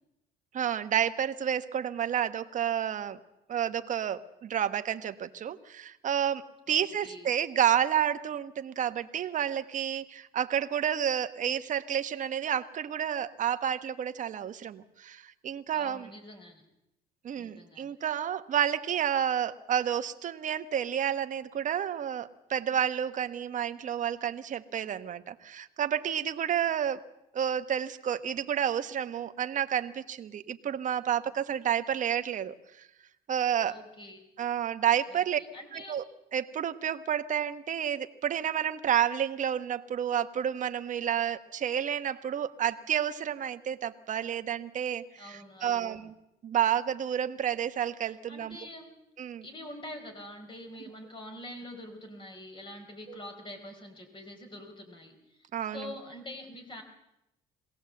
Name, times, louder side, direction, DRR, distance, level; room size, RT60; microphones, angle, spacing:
voice 1, 0.5-3.2 3.5-16.1 17.2-27.0 27.3-32.9 33.3-33.8 34.4-35.4 35.7-36.0 36.3-46.1 46.4-48.6 49.2-49.5 53.1-53.2 55.5-55.9, right 9 dB, 50° right, 10 dB, 1.2 m, -30 dB
voice 2, 6.7-7.3 15.7-16.6 17.3-17.9 33.6-34.2 35.1-36.0 45.2-45.9 48.3-48.9 49.4-55.5 55.7-56.8, left 1 dB, 30° left, 4 dB, 4.5 m, -45 dB
22.0 x 17.5 x 7.7 m, 0.87 s
cardioid pair, 110°, 17 cm